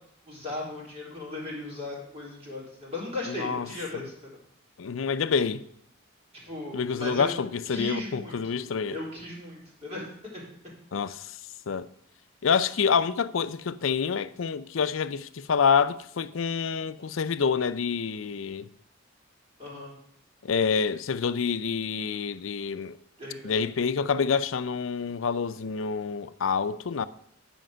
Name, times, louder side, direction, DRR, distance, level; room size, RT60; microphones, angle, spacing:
voice 1, 0.3-4.4 6.3-7.3 7.7-10.4 19.6-19.9 23.2-23.6, left 2 dB, 30° right, 3.9 m, -37 dB
voice 2, 3.3-3.7 3.9-4.0 4.8-5.6 6.7-9.0 10.9-11.2 11.7-11.9 12.4-18.7 20.4-23.0 23.4-27.1, left 6 dB, 70° left, 0.5 m, -27 dB
10.0 x 5.2 x 6.3 m
head